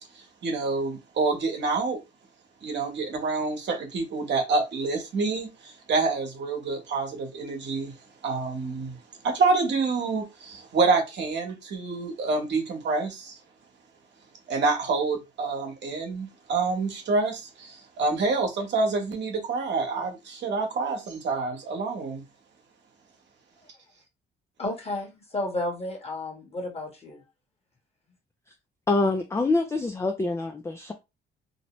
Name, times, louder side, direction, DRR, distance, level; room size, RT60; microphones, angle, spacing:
voice 1, 0.1-2.0 2.6-7.9 8.2-9.0 9.2-13.4 14.5-22.2, right 3 dB, 60° right, 1.1 m, -27 dB
voice 2, 24.6-27.2, left 2 dB, 30° left, 1.2 m, -32 dB
voice 3, 28.9-30.9, left 3 dB, 15° left, 0.3 m, -25 dB
2.7 x 2.1 x 2.9 m
cardioid pair, 90°, 20 cm